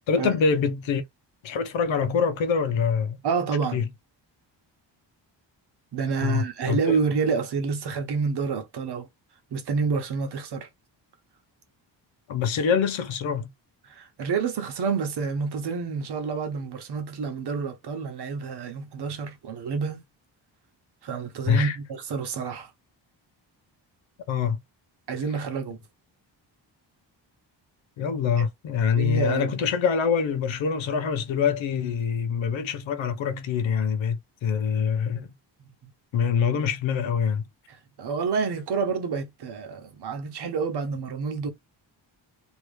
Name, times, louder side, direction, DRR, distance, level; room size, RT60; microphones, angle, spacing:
voice 1, 0.1-1.0 1.4-3.2 3.7-3.8 6.2-7.0 12.3-13.5 21.5-21.8 24.3-24.6 28.0-35.3 36.1-37.4, left 6 dB, 85° left, 0.9 m, -25 dB
voice 2, 3.2-3.8 5.9-9.1 9.5-10.7 13.9-20.0 21.0-22.7 25.1-25.8 29.0-29.5 35.8-35.9 37.7-41.5, right 5 dB, 60° right, 1.0 m, -28 dB
2.9 x 2.7 x 3.1 m
wide cardioid pair, 180°, 45 cm